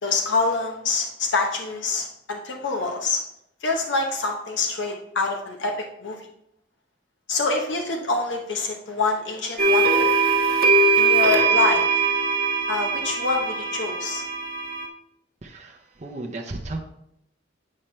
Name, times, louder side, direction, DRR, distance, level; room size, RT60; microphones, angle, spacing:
voice 1, 0.0-3.2 3.6-5.7 6.0-6.2 7.3-10.1 10.9-11.8 12.7-14.2, left 3 dB, 85° left, 2 dB, 0.9 m, -26 dB
sound 1, 9.6-14.9, right 4 dB, 55° right, 1.1 m, -21 dB
voice 2, 15.4-16.8, right 2 dB, 40° right, 1 dB, 0.7 m, -34 dB
8.7 x 5.7 x 3.2 m, 0.77 s
head